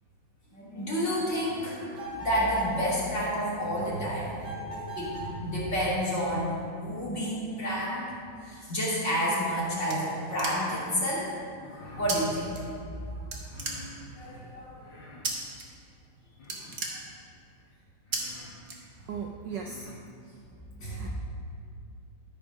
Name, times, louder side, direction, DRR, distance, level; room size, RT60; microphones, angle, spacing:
voice 1, 0.5-6.5 6.8-8.1 8.4-11.3 11.8-12.7 13.1-13.2 13.9-14.9 16.9-17.0 20.8-21.1, equal, 35° left, -8 dB, 2.8 m, -30 dB
sound 1, 1.9-2.8 4.4-5.4, right 1 dB, 15° right, 2.5 m, -38 dB
sound 2, 9.2-10.9 12.1-12.2 12.5-13.0 13.3-14.3 15.2-15.6 16.0-16.1 16.4-17.5 18.1-18.2 18.6-19.3, right 4 dB, 45° right, 1.5 m, -35 dB
sound 3, 11.4-12.2 13.4-13.9 14.8-15.3 16.3-16.9 17.6-17.7 18.0-18.6 19.4-20.0, left 3 dB, 80° left, 2.8 m, -49 dB
voice 2, 19.1-19.9 21.0-21.1, right 6 dB, 70° right, 2 dB, 1.1 m, -37 dB
13.5 x 5.4 x 5.2 m, 2.4 s
omnidirectional pair, 2.3 m